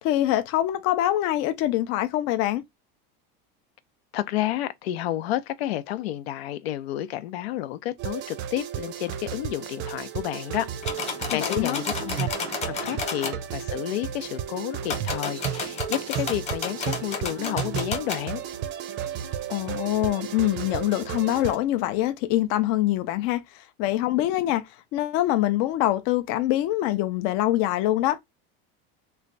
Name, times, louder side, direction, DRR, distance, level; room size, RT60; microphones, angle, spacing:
voice 1, 0.0-2.6 11.3-11.8 19.5-24.6 24.9-28.2, left 14 dB, 50° left, 0.5 m, -24 dB
voice 2, 4.1-12.3 12.7-18.4, left 13 dB, 85° left, 0.7 m, -31 dB
sound 1, 8.0-21.6, right 10 dB, 35° right, 0.5 m, -33 dB
sound 2, 10.8-13.4 14.8-18.2, left 5 dB, 20° left, 1.1 m, -32 dB
3.1 x 2.3 x 3.9 m
supercardioid pair, 145°, 31 cm